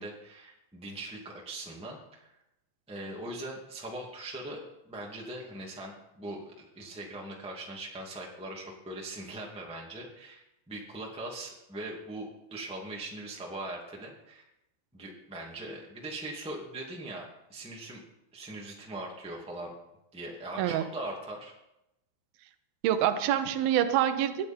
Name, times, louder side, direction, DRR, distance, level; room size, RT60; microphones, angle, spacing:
voice 1, 0.0-2.2 2.9-4.6 4.9-14.4 14.9-18.0 18.3-19.7 20.1-21.5, right 1 dB, 5° right, -2 dB, 0.6 m, -41 dB
voice 2, 22.8-24.5, right 10 dB, 75° right, 9 dB, 2.3 m, -26 dB
20.5 x 12.0 x 4.5 m, 0.88 s
omnidirectional pair, 5.4 m